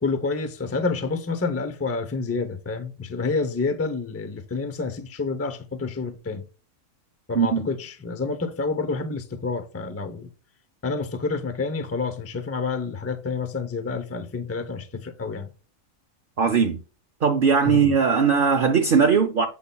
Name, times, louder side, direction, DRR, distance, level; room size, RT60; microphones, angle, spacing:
voice 1, 0.0-6.4 7.3-10.3 10.8-15.5 17.7-17.9, left 4 dB, 20° left, 0.4 m, -28 dB
voice 2, 7.3-7.7 16.4-16.8 17.2-19.5, right 6 dB, 55° right, 0.7 m, -19 dB
8.0 x 5.4 x 2.2 m
omnidirectional pair, 1.4 m